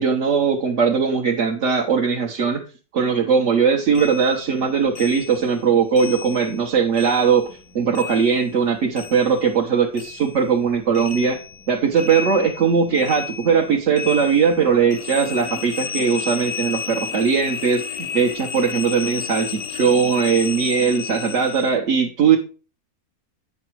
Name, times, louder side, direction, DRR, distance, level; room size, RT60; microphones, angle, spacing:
voice 1, 0.0-2.6 2.9-11.4 11.7-22.4, right 6 dB, 55° right, 0 dB, 1.3 m, -19 dB
sound 1, 3.9-6.7 6.9-9.7 9.9-21.7, left 6 dB, 85° left, 1.4 m, -33 dB
8.7 x 6.0 x 4.6 m, 0.35 s
omnidirectional pair, 1.5 m